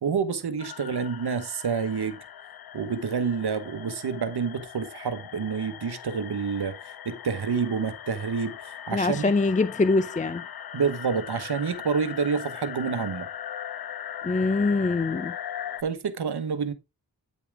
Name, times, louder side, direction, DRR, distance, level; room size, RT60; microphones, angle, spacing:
voice 1, 0.0-2.2 2.7-6.8 7.0-9.2 10.7-13.3 15.8-16.7, right 6 dB, 70° right, 1.2 m, -28 dB
sound 1, 0.6-15.8, left 10 dB, 65° left, 0.6 m, -40 dB
voice 2, 8.9-10.4 14.2-15.4, left 3 dB, 20° left, 0.5 m, -24 dB
9.4 x 5.6 x 3.5 m
wide cardioid pair, 65°, 40 cm